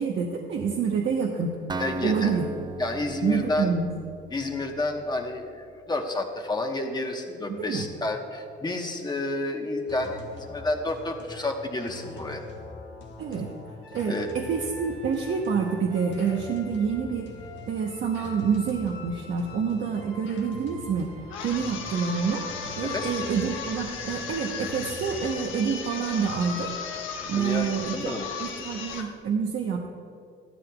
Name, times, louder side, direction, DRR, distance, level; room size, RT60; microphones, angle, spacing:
voice 1, 0.0-1.6 2.0-2.5 3.2-3.9 7.5-7.9 13.2-13.5 13.9-17.3 17.7-22.5 22.8-26.7 27.2-29.9, right 6 dB, 70° right, 0 dB, 1.0 m, -27 dB
Acoustic guitar, 1.7-5.5, right 4 dB, 20° right, 0.5 m, -38 dB
voice 2, 1.8-2.4 2.8-3.7 4.3-12.4 14.1-14.3 22.8-23.1 27.4-28.3, left 2 dB, 20° left, 3 dB, 1.1 m, -30 dB
sound 1, 9.9-25.3, left 2 dB, 70° left, 1.4 m, -43 dB
sound 2, 21.3-29.1, left 6 dB, 90° left, 1.0 m, -36 dB
14.0 x 12.5 x 2.3 m, 2.3 s
cardioid pair, 90°, 20 cm